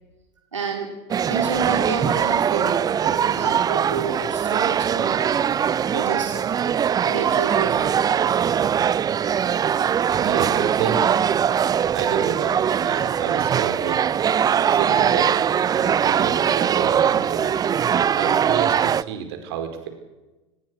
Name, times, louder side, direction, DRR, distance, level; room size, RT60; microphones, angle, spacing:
voice 1, 0.5-0.9 1.3-5.3 5.9-6.4 7.0-8.1, right 5 dB, 85° right, 1 dB, 3.9 m, -30 dB
sound 1, 1.1-19.0, right 8 dB, 25° right, 0.7 m, -21 dB
voice 2, 10.2-11.1 11.9-14.1 14.6-17.6 18.1-19.9, right 8 dB, 60° right, 6 dB, 5.0 m, -30 dB
26.0 x 20.5 x 6.5 m, 1.1 s
figure-of-eight pair, 85°, 15 cm